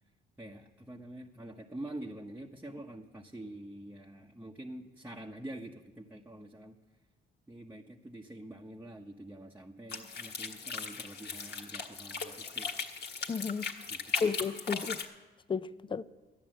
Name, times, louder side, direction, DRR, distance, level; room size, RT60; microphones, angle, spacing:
voice 1, 0.4-6.8 7.5-12.7 13.9-14.3, right 1 dB, 10° right, 1.0 m, -46 dB
sound 1, 9.9-15.0, left 5 dB, 55° left, 1.6 m, -38 dB
voice 2, 13.3-13.7 14.2-15.0 15.5-16.0, left 5 dB, 25° left, 0.5 m, -32 dB
13.0 x 10.0 x 7.6 m
cardioid pair, 90°, 20 cm